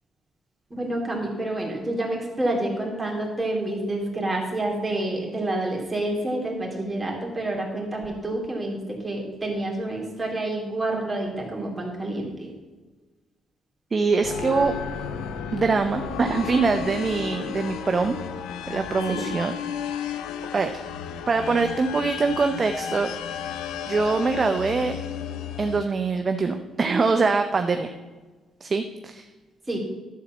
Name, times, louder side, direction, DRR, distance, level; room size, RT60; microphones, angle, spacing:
voice 1, 0.7-12.5 19.1-19.3 29.7-29.8, right 1 dB, 20° right, -1 dB, 2.6 m, -28 dB
voice 2, 13.9-14.7 15.5-18.2 18.7-19.5 19.9-20.2 20.5-20.8 21.3-23.4 23.9-25.0 25.6-27.9 28.6-29.3, right 4 dB, 35° right, 7 dB, 0.5 m, -24 dB
sound 1, 14.2-25.9, left 7 dB, 90° left, 0.6 m, -33 dB
11.0 x 4.1 x 7.2 m, 1.3 s
cardioid pair, 90°, 0 cm